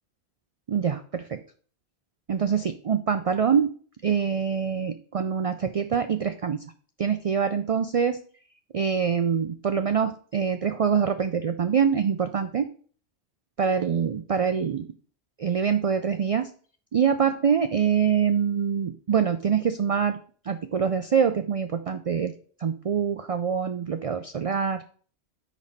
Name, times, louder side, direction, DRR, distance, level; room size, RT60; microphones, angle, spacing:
voice 1, 0.7-1.4 2.3-3.7 4.0-6.6 7.0-8.2 8.7-12.7 13.6-14.9 15.4-16.5 16.9-20.2 20.4-22.3 22.6-24.8, right 7 dB, 65° right, 9 dB, 0.3 m, -25 dB
5.3 x 5.1 x 4.1 m, 0.44 s
omnidirectional pair, 1.1 m